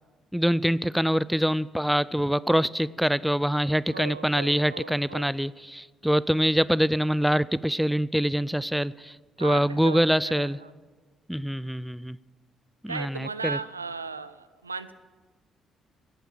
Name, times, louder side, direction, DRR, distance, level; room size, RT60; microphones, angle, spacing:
voice 1, 0.3-9.1 9.4-10.6 11.3-12.2 12.8-13.6, equal, ahead, 19 dB, 0.4 m, -25 dB
voice 2, 3.9-5.3 9.4-10.7 12.9-14.9, right 4 dB, 90° right, 13 dB, 0.4 m, -37 dB
17.5 x 8.9 x 7.5 m, 1.4 s
figure-of-eight pair, 45°, 0 cm